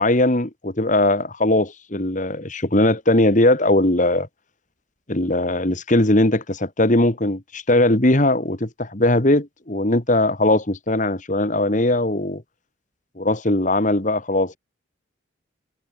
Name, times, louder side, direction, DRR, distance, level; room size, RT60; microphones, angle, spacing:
voice 1, 0.0-4.3 5.1-12.4 13.2-14.6, left 1 dB, 40° left, 2.0 m, -19 dB
head